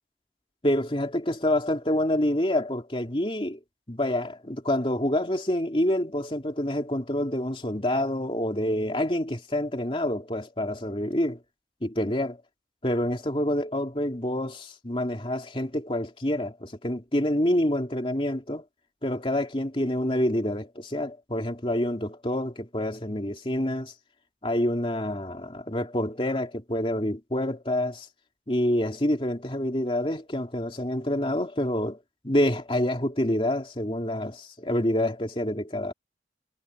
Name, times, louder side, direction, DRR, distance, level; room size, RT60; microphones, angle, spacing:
voice 1, 0.6-3.6 3.9-11.4 11.8-12.4 12.8-18.6 19.0-23.9 24.4-28.1 28.5-32.0 32.2-35.9, left 1 dB, 30° left, 2.9 m, -27 dB
head